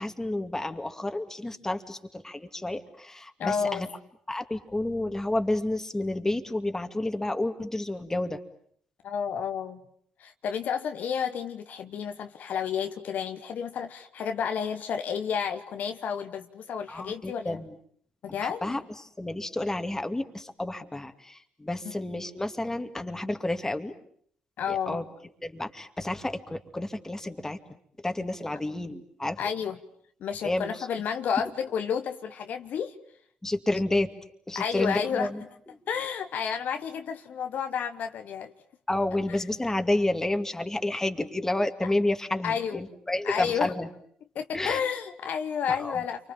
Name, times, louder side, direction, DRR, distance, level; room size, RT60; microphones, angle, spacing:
voice 1, 0.0-3.9 4.3-8.4 16.9-17.7 18.4-18.8 19.2-23.9 24.7-25.0 25.4-27.6 28.0-29.4 30.4-30.9 33.4-34.1 34.5-35.4 38.9-43.9 44.5-44.8 45.7-46.0, left 1 dB, 15° left, 7 dB, 2.5 m, -30 dB
voice 2, 3.4-3.9 9.0-9.8 10.2-17.6 18.2-18.8 21.8-21.9 24.6-25.0 29.4-29.8 30.2-32.9 34.5-35.3 35.9-38.5 39.3-39.4 42.4-42.8 43.2-43.7 44.3-46.3, left 7 dB, 65° left, 7 dB, 1.2 m, -31 dB
29.5 x 24.5 x 7.4 m, 0.64 s
hypercardioid pair, 50°, 3 cm